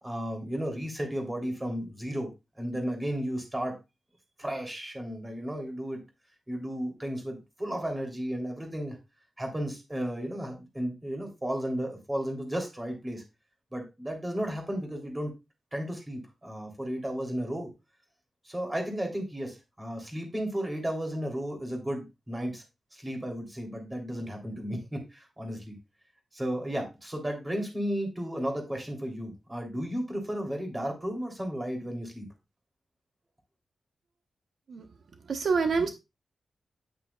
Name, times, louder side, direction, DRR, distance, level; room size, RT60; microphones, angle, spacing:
voice 1, 0.0-2.3 2.6-3.8 4.4-6.0 6.5-9.0 9.4-13.2 13.7-15.3 15.7-17.7 18.4-22.6 22.9-25.7 26.3-32.3, equal, 15° right, 2 dB, 3.2 m, -34 dB
voice 2, 35.3-35.9, right 5 dB, 70° right, 6 dB, 1.0 m, -26 dB
9.8 x 8.6 x 2.4 m, 0.24 s
wide cardioid pair, 125°, 0 cm